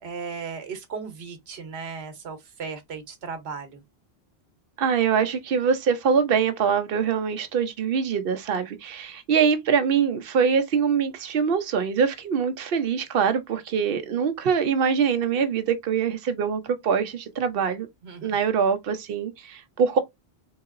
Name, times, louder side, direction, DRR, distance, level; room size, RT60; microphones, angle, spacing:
voice 1, 0.0-3.8 18.0-18.4, right 5 dB, 85° right, 1.1 m, -36 dB
voice 2, 4.8-17.9 18.2-20.0, right 6 dB, 65° right, 0.8 m, -24 dB
3.8 x 2.8 x 2.4 m
omnidirectional pair, 1.1 m